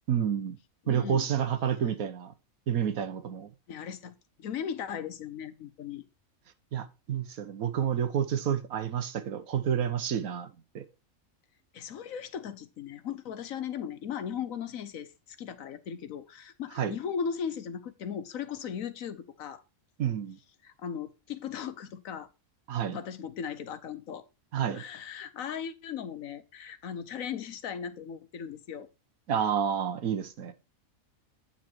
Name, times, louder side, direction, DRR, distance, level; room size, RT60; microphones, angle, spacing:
voice 1, 0.1-0.6 0.9-2.3 2.7-3.5 6.7-10.8 16.8-16.9 20.0-20.4 22.7-23.0 24.5-24.8 29.3-30.5, right 8 dB, 85° right, 1.5 m, -29 dB
voice 2, 0.8-1.3 3.7-6.0 11.7-19.6 20.6-22.3 22.9-24.2 24.7-28.9, left 7 dB, 75° left, 1.3 m, -37 dB
9.2 x 5.7 x 4.4 m
omnidirectional pair, 1.4 m